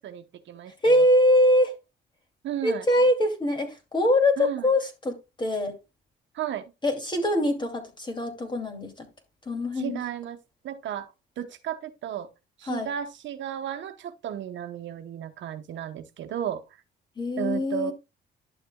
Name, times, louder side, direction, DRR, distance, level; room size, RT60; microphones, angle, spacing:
voice 1, 0.0-1.0 2.4-2.8 4.4-4.7 6.3-6.7 9.8-10.4 10.6-12.3 12.6-16.6 17.4-17.9, right 10 dB, 70° right, 0.9 m, -34 dB
voice 2, 0.8-1.7 2.6-5.7 6.8-9.1 9.5-10.0 12.7-12.9 17.2-17.9, left 1 dB, 25° left, 2.5 m, -23 dB
11.5 x 6.6 x 2.3 m
cardioid pair, 90°, 20 cm